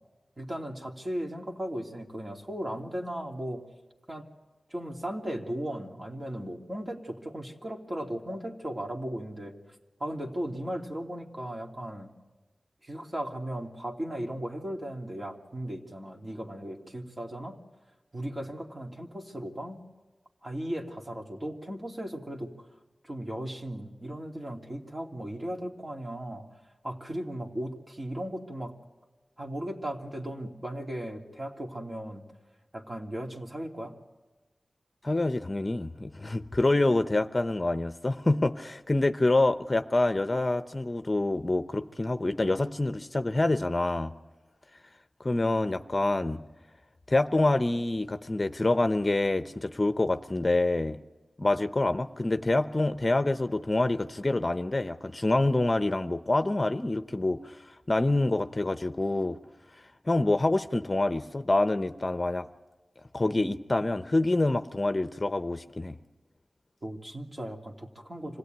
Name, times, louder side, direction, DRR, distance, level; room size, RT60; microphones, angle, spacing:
voice 1, 0.4-3.6 4.1-4.3 4.7-9.5 10.0-12.1 12.8-17.6 18.1-19.8 20.4-22.7 23.0-26.5 26.8-28.8 29.4-32.2 32.7-33.9 66.8-68.4, right 1 dB, 35° right, 0 dB, 2.9 m, -36 dB
voice 2, 35.0-44.1 45.2-46.4 47.1-51.0 51.4-57.6 57.9-59.4 60.1-62.5 63.1-66.0, left 2 dB, 35° left, 9 dB, 0.8 m, -26 dB
26.0 x 17.0 x 9.4 m, 1.2 s
wide cardioid pair, 65°, 0 cm